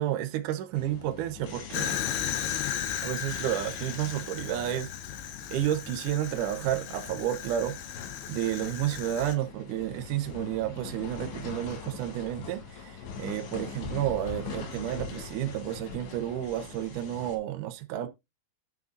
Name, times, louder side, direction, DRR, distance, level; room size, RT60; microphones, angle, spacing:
voice 1, 0.0-2.0 3.0-5.2 5.5-18.1, right 12 dB, 75° right, 1.9 m, -31 dB
sound 1, 0.7-17.4, left 6 dB, 85° left, 4.8 m, -43 dB
Fire, 1.7-9.4, left 10 dB, 70° left, 2.8 m, -35 dB
9.6 x 5.3 x 4.0 m
omnidirectional pair, 5.1 m